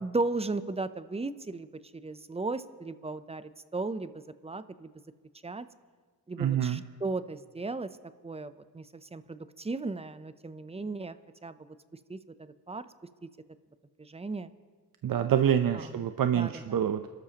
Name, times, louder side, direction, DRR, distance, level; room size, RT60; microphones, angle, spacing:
voice 1, 0.0-1.7 2.0-4.1 4.4-4.9 5.4-5.7 6.3-7.9 8.2-11.2 11.4-11.6 12.1-12.2 12.7-12.8 14.0-14.5 16.3-16.5, right 3 dB, 15° right, 13 dB, 0.5 m, -35 dB
voice 2, 6.4-6.8 15.0-17.1, right 9 dB, 60° right, 8 dB, 0.7 m, -26 dB
28.0 x 13.0 x 2.9 m, 1.5 s
cardioid pair, 80°, 39 cm